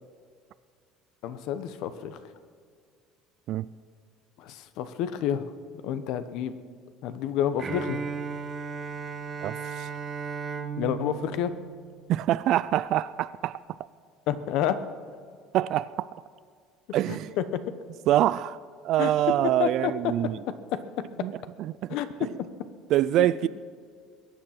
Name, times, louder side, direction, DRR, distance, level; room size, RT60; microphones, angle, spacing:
voice 1, 1.2-2.2 4.4-5.5 5.8-6.6 7.0-8.0 10.8-11.5 14.3-14.8 17.1-17.2 17.5-17.6 19.0-19.1 19.6-19.9 20.5-20.8 21.9-22.3 23.2-23.3, left 10 dB, 65° left, 12 dB, 1.0 m, -29 dB
Bowed string instrument, 7.6-12.5, right 5 dB, 25° right, 0.9 m, -36 dB
voice 2, 9.4-9.9 12.1-13.6 15.5-16.1 16.9-17.3 18.1-18.6 18.8-20.4 21.2-21.3 21.6-22.3 22.9-23.5, right 13 dB, 50° right, 16 dB, 0.3 m, -25 dB
22.0 x 9.1 x 5.8 m, 2.1 s
cardioid pair, 155°, 0 cm